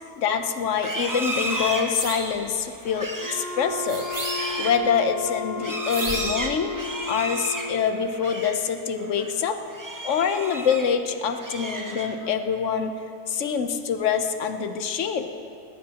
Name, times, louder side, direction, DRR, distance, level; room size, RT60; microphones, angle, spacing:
voice 1, 0.2-4.1 4.6-6.7 7.1-9.6 10.0-13.0 13.3-15.3, left 7 dB, 55° left, 8 dB, 1.0 m, -25 dB
Livestock farm animals working animals, 0.7-8.7 9.0-9.3 9.7-11.0 11.3-12.4, right 1 dB, 25° right, 0.4 m, -33 dB
sound 1, 1.9-2.4 3.9-4.7 5.9-6.5, right 2 dB, 55° right, 2.6 m, -32 dB
Wind instrument woodwind instrument, 3.1-7.9, left 3 dB, 75° left, 5.2 m, -34 dB
19.0 x 18.0 x 2.9 m, 2.6 s
omnidirectional pair, 1.8 m